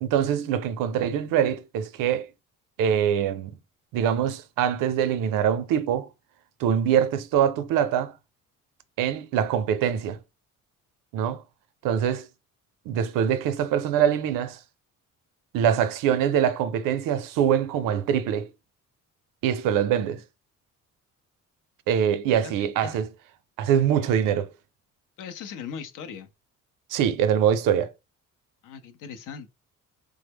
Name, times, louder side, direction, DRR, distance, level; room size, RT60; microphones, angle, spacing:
voice 1, 0.0-2.3 2.8-3.5 3.9-6.1 6.6-8.1 9.0-10.2 11.1-11.4 11.8-12.3 12.9-14.6 15.5-18.5 19.4-20.2 21.9-23.1 23.6-24.5 26.9-27.9, right 9 dB, 85° right, 0.5 m, -23 dB
voice 2, 22.4-23.0 25.2-26.3 28.6-29.5, left 7 dB, 75° left, 0.6 m, -39 dB
3.2 x 2.0 x 3.4 m
cardioid pair, 85°, 32 cm